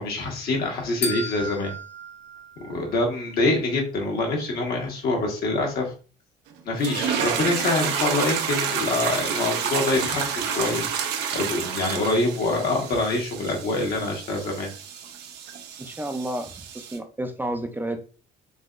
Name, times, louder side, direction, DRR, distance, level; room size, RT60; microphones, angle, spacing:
voice 1, 0.0-1.7 2.6-5.9 6.6-10.9 11.3-14.7, left 2 dB, 65° left, 0 dB, 1.3 m, -25 dB
sound 1, 1.0-3.3, left 1 dB, 35° left, 0.7 m, -34 dB
sound 2, 6.8-17.0, right 7 dB, 80° right, 0.7 m, -29 dB
voice 2, 15.8-18.0, right 1 dB, 10° right, 5 dB, 0.4 m, -31 dB
3.9 x 2.8 x 2.4 m, 0.36 s
cardioid pair, 110°, 17 cm